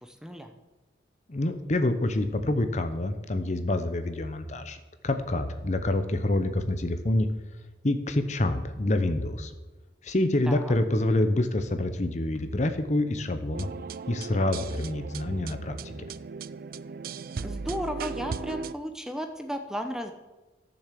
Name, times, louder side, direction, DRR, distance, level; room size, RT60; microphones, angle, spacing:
voice 1, 0.0-0.5 10.4-10.8 17.4-20.1, equal, 5° right, 6 dB, 0.8 m, -34 dB
voice 2, 1.3-4.8 5.0-7.3 7.8-9.5 10.0-13.7 14.1-15.9, left 1 dB, 40° left, 9 dB, 0.8 m, -27 dB
sound 1, 13.5-18.7, right 5 dB, 50° right, 0.4 m, -37 dB
13.5 x 7.0 x 7.6 m, 1.1 s
head